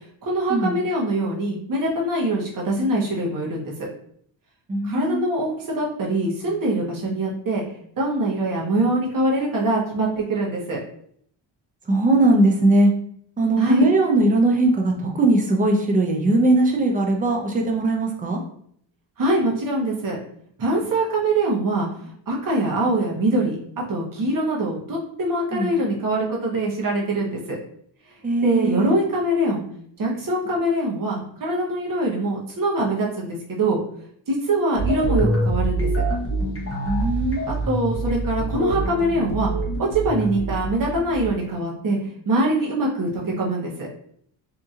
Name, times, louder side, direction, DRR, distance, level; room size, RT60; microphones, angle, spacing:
voice 1, 0.2-3.9 4.8-7.6 8.0-10.8 13.6-13.9 19.2-20.2 20.6-23.6 23.9-27.6 28.4-29.6 30.0-33.8 34.3-35.9 37.5-39.5 39.8-42.0 42.3-43.9, right 1 dB, 45° right, -2 dB, 0.9 m, -23 dB
voice 2, 4.7-5.2 11.9-12.9 13.4-18.4 25.5-25.7 28.2-28.9 36.9-37.5, right 2 dB, 20° right, 2 dB, 0.5 m, -19 dB
sound 1, 34.8-41.5, right 1 dB, 30° left, 0.8 m, -25 dB
2.8 x 2.6 x 2.4 m, 0.65 s
cardioid pair, 105°, 48 cm